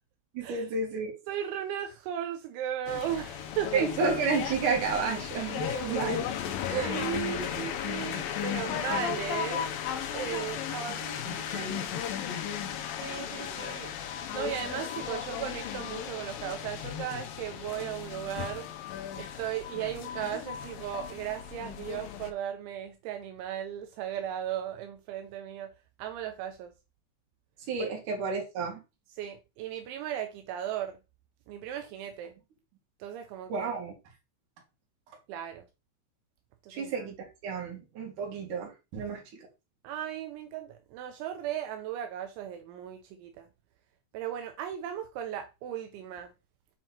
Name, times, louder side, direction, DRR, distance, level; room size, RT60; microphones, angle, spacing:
voice 1, 0.3-1.1 3.7-6.2 6.7-7.0 10.9-11.0 11.2-11.8 27.7-28.8 33.5-33.9 36.7-37.2 37.4-39.5, right 5 dB, 50° right, 3.5 m, -31 dB
voice 2, 1.3-3.9 5.6-6.3 6.7-9.7 10.1-11.7 13.0-13.9 14.3-18.7 19.2-25.7 26.0-26.7 27.8-27.9 29.2-31.0 31.5-32.3 33.0-33.7 35.3-35.6 36.6-37.1 39.8-43.5 44.1-46.3, right 10 dB, 85° right, 3.1 m, -36 dB
sound 1, 2.9-22.3, left 9 dB, 90° left, 2.0 m, -35 dB
8.0 x 4.6 x 4.2 m
omnidirectional pair, 5.6 m